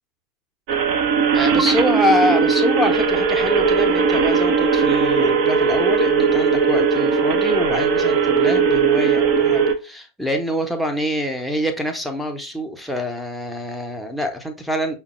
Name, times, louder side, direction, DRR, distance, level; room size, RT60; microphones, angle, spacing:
sound 1, 0.7-9.7, right 5 dB, 45° right, 0.5 m, -18 dB
voice 1, 1.3-15.0, left 1 dB, ahead, 0.8 m, -25 dB
5.3 x 2.2 x 3.0 m
figure-of-eight pair, 90°, 0 cm